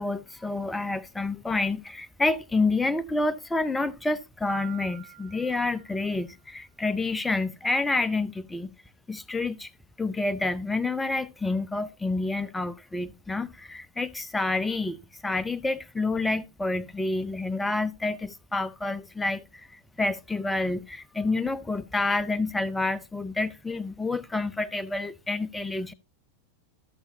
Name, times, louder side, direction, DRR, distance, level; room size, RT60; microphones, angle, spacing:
voice 1, 0.0-8.7 9.1-9.7 10.0-25.9, left 3 dB, 10° left, 0.6 m, -28 dB
Piano, 4.5-6.4, right 18 dB, 45° right, 1.0 m, -46 dB
13.5 x 6.9 x 2.8 m
figure-of-eight pair, 90°, 0 cm